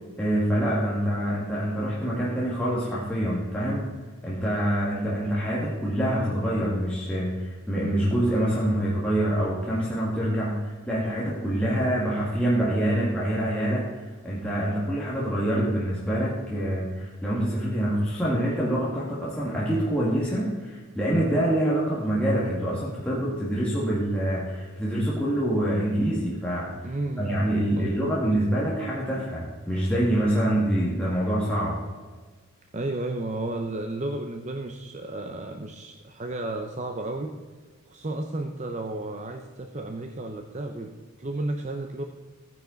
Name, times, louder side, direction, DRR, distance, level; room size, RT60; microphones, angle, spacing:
voice 1, 0.2-3.9 4.2-26.9 27.2-31.8, right 1 dB, 5° left, -7 dB, 1.9 m, -26 dB
voice 2, 26.8-27.4 27.7-28.1 32.7-37.3 37.8-42.0, right 2 dB, 30° right, 5 dB, 0.7 m, -33 dB
15.0 x 10.0 x 4.0 m, 1.4 s
head